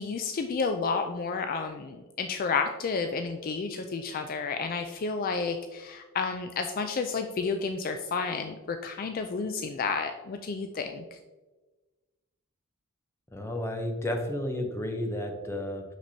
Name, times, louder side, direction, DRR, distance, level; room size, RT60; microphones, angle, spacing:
voice 1, 0.0-11.0, left 4 dB, 40° left, 6 dB, 0.3 m, -31 dB
voice 2, 13.3-16.0, left 1 dB, 15° left, 3 dB, 0.7 m, -32 dB
5.9 x 5.8 x 2.7 m, 1.2 s
head